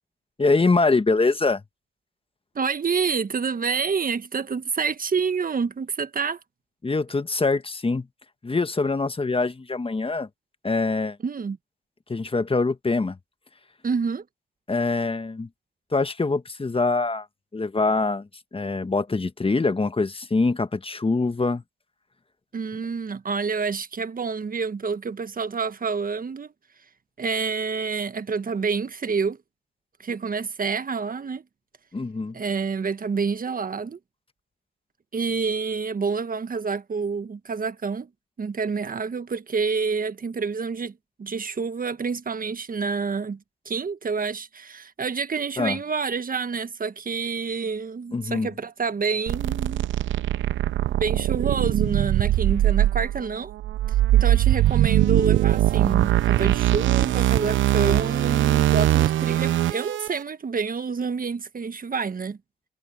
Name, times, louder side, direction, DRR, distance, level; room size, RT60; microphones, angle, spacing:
voice 1, 0.4-1.6 6.8-8.1 8.4-10.3 10.6-11.2 12.1-13.2 14.7-15.5 15.9-17.3 17.5-21.6 31.9-32.4 45.6-45.8 48.1-48.5, left 3 dB, 30° left, 1.4 m, -24 dB
voice 2, 2.5-6.4 11.2-11.6 13.8-14.2 22.5-26.5 27.2-29.4 30.0-31.4 32.3-34.0 35.1-38.1 38.4-40.9 41.2-43.4 43.6-49.9 50.9-53.5 54.1-62.4, right 5 dB, 45° right, 1.4 m, -28 dB
sound 1, 49.3-60.1, right 13 dB, 80° right, 0.8 m, -21 dB
supercardioid pair, 50°, 20 cm